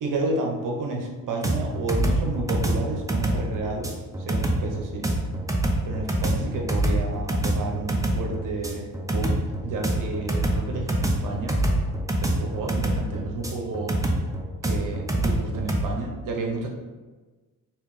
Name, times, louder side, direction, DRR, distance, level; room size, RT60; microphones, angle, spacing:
voice 1, 0.0-3.9 4.2-5.1 5.8-9.4 9.6-11.6 12.2-14.0 14.6-16.7, right 3 dB, 60° right, 1 dB, 0.8 m, -31 dB
sound 1, 1.4-15.8, right 1 dB, 10° right, 0.6 m, -25 dB
3.4 x 3.1 x 3.2 m, 1.3 s
supercardioid pair, 65°, 35 cm